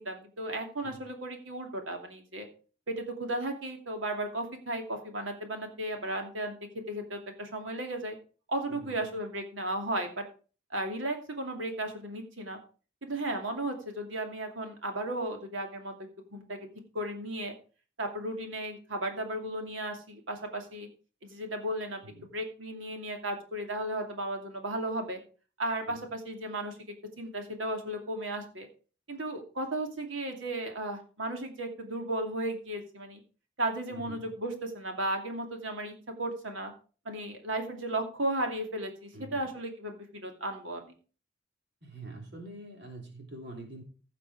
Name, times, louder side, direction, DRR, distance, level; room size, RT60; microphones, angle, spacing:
voice 1, 0.0-2.5 2.9-6.6 6.9-8.2 8.5-10.2 10.7-12.6 13.0-15.9 16.3-16.7 16.9-17.5 18.0-20.9 21.2-25.2 25.6-26.8 27.2-28.7 29.1-33.2 33.6-36.7 37.0-40.9, right 1 dB, 85° right, 4 dB, 2.6 m, -35 dB
voice 2, 8.7-9.1 22.0-22.3 25.9-26.1 33.9-34.3 39.1-39.5 41.8-43.8, right 2 dB, 55° right, 2 dB, 3.1 m, -45 dB
15.5 x 5.9 x 4.8 m, 0.37 s
head